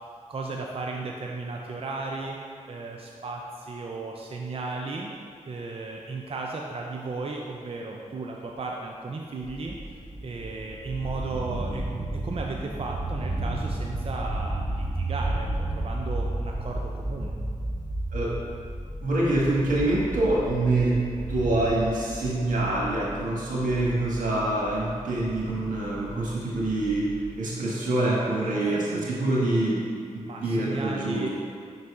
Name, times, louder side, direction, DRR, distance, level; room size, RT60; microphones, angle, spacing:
voice 1, 0.3-2.4 2.7-5.1 5.5-9.8 10.2-11.8 12.2-15.5 15.7-17.3 28.2-29.1 30.3-31.3, right 3 dB, 45° right, 0 dB, 0.5 m, -35 dB
sound 1, 9.6-27.3, right 1 dB, 20° right, 1.3 m, -33 dB
voice 2, 19.0-27.1 27.3-29.8 30.4-31.3, right 2 dB, 85° right, -5 dB, 1.5 m, -25 dB
5.4 x 4.0 x 4.8 m, 2.2 s
cardioid pair, 50°, 13 cm